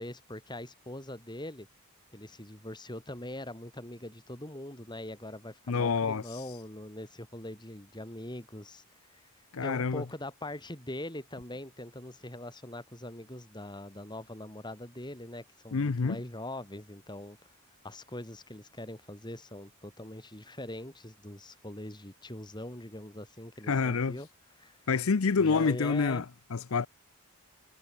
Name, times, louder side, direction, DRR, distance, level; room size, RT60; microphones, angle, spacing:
voice 1, 0.0-1.7 2.1-8.8 9.6-17.4 17.8-24.3 24.6-24.8 25.4-26.3, left 1 dB, 20° left, 4.2 m, -42 dB
voice 2, 5.7-6.4 9.5-10.0 15.7-16.2 23.7-24.1 24.9-26.2 26.5-26.9, left 5 dB, 70° left, 0.6 m, -27 dB
head